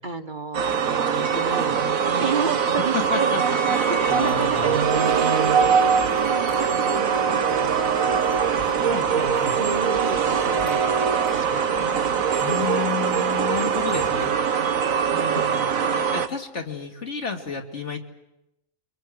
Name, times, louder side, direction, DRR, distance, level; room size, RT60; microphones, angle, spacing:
voice 1, 0.0-3.4 3.9-11.1 11.3-12.0 15.1-16.0, right 4 dB, 35° right, 6 dB, 1.4 m, -33 dB
sound 1, 0.5-16.3, right 7 dB, 90° right, 1.6 m, -22 dB
voice 2, 2.9-3.4 3.7-4.8 8.9-9.6 12.4-14.3 15.2-15.4 15.7-18.0, left 5 dB, 55° left, 3 dB, 2.8 m, -31 dB
sound 2, 4.1-14.4, equal, 80° left, 5.1 m, -41 dB
29.0 x 24.5 x 7.9 m, 0.86 s
omnidirectional pair, 1.4 m